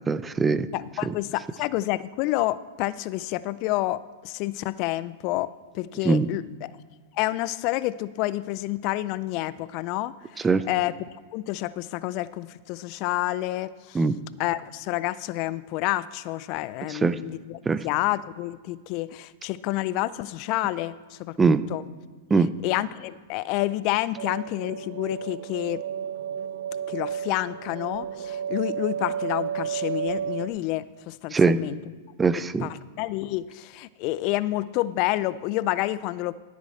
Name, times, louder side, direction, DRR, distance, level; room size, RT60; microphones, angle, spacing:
voice 1, 0.1-0.7 1.0-1.1 6.0-6.3 10.4-10.6 13.9-14.2 16.9-17.2 17.7-17.8 21.4-21.6 22.3-22.5 31.3-31.6 32.2-32.7, right 4 dB, 15° right, 15 dB, 0.4 m, -21 dB
voice 2, 0.7-5.5 5.7-6.7 7.2-11.0 11.3-14.0 14.4-21.3 21.7-21.8 22.6-25.8 26.9-31.8 32.6-36.3, left 16 dB, 45° left, 18 dB, 0.3 m, -29 dB
sound 1, 24.2-30.5, right 8 dB, 65° right, 0.8 m, -32 dB
14.0 x 7.3 x 4.4 m, 1.4 s
hypercardioid pair, 110°, 0 cm